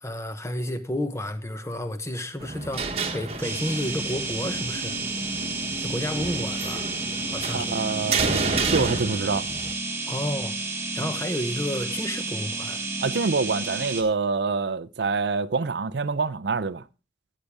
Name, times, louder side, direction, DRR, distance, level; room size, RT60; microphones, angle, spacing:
voice 1, 0.0-4.9 5.8-6.9 7.3-7.7 10.1-10.5 10.9-12.9, left 1 dB, 15° left, 0.9 m, -31 dB
sound 1, 2.4-9.7, right 3 dB, 35° right, 1.2 m, -31 dB
sound 2, 3.4-14.0, right 3 dB, 15° right, 1.4 m, -31 dB
voice 2, 7.5-9.5 11.0-11.1 13.0-16.8, right 4 dB, 65° right, 0.5 m, -26 dB
15.0 x 8.5 x 3.5 m
head